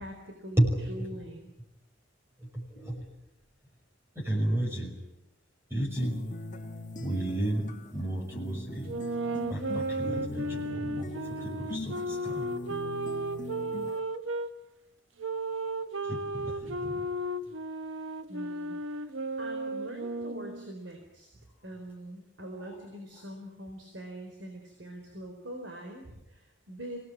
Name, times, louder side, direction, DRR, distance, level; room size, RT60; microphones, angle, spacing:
voice 1, 0.0-0.6 0.9-1.5 18.3-19.1 19.4-21.3 21.6-27.0, right 1 dB, 65° right, 3 dB, 4.2 m, -43 dB
voice 2, 0.6-1.1 2.4-3.1 4.2-5.1 5.7-6.3 7.0-8.9 9.5-12.5 16.0-17.1 22.6-22.8, right 1 dB, 10° right, 1 dB, 5.7 m, -32 dB
sound 1, 6.0-14.0, left 2 dB, 40° left, 1.9 m, -41 dB
sound 2, 8.9-14.5 15.2-20.7, right 2 dB, 80° right, 1.4 m, -34 dB
24.5 x 18.5 x 9.6 m, 0.92 s
head